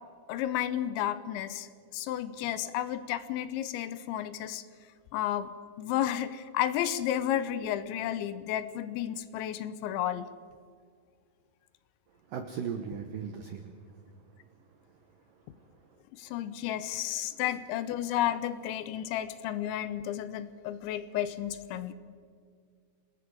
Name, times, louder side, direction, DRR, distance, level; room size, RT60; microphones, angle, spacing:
voice 1, 0.3-1.7 1.9-4.6 5.1-5.5 5.8-10.3 16.1-21.9, left 11 dB, 80° left, 13 dB, 3.0 m, -32 dB
voice 2, 12.3-13.7, right 7 dB, 80° right, 6 dB, 2.0 m, -37 dB
27.5 x 19.5 x 4.8 m, 2.1 s
omnidirectional pair, 5.5 m